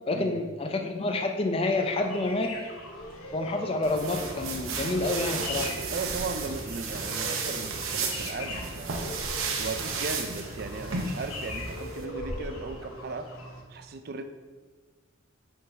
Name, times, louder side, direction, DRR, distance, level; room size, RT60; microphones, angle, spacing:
voice 1, 0.1-2.6 3.3-5.8, left 2 dB, 25° left, 4 dB, 0.4 m, -28 dB
sound 1, 1.2-2.1 2.7-3.7 4.2-5.4 5.7-6.8 7.1-8.5 8.9-9.9 10.4-13.1, equal, 65° left, 1.9 m, -47 dB
sound 2, 1.7-13.6, left 1 dB, 90° left, 1.1 m, -42 dB
sound 3, 3.8-12.1, right 4 dB, 75° right, 0.8 m, -33 dB
voice 2, 5.9-9.2 9.6-13.3 13.7-14.2, right 3 dB, 50° right, 8 dB, 0.4 m, -37 dB
7.1 x 3.8 x 4.4 m, 1.5 s
head